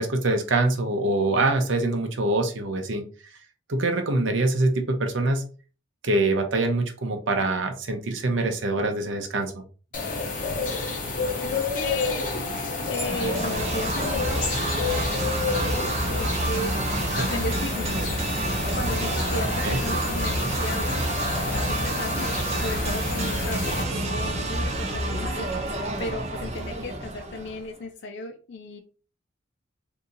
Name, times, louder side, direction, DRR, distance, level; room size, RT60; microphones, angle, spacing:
voice 1, 0.0-3.1 3.7-5.5 6.0-9.5 17.1-17.3 19.6-19.8, right 2 dB, 70° right, 5 dB, 0.7 m, -24 dB
sound 1, 9.9-23.8, left 3 dB, 40° left, 0.8 m, -30 dB
voice 2, 11.4-12.3 12.9-16.8 17.2-18.1 18.7-22.3 22.5-25.5 26.0-28.8, left 2 dB, 55° left, 4 dB, 0.4 m, -35 dB
sound 2, 11.5-12.1 12.7-13.2 13.5-13.6 14.2-14.8 15.6-15.9 16.5-16.6, equal, 10° left, 0.7 m, -44 dB
sound 3, 12.9-27.6, right 1 dB, 35° right, 0.5 m, -28 dB
2.7 x 2.6 x 3.8 m, 0.37 s
head